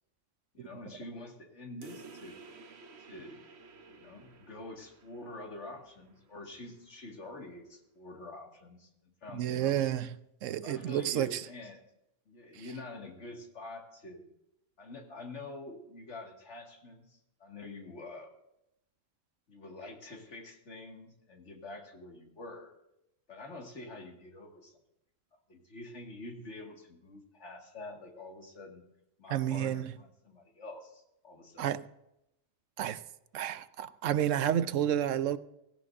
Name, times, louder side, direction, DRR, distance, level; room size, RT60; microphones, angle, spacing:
voice 1, 0.5-2.4 3.0-3.4 3.9-8.9 9.2-9.8 10.6-11.8 12.3-14.2 14.8-18.3 19.5-22.7 23.3-24.8 25.5-28.8 29.2-31.7, left 2 dB, 70° left, 2.4 m, -46 dB
sound 1, 1.8-6.9, right 3 dB, 60° right, 1.2 m, -54 dB
voice 2, 9.3-10.1 10.4-11.4 29.3-29.9 31.6-31.8 32.8-33.0 33.3-35.4, right 11 dB, 90° right, 1.0 m, -30 dB
17.0 x 16.5 x 2.7 m
omnidirectional pair, 1.3 m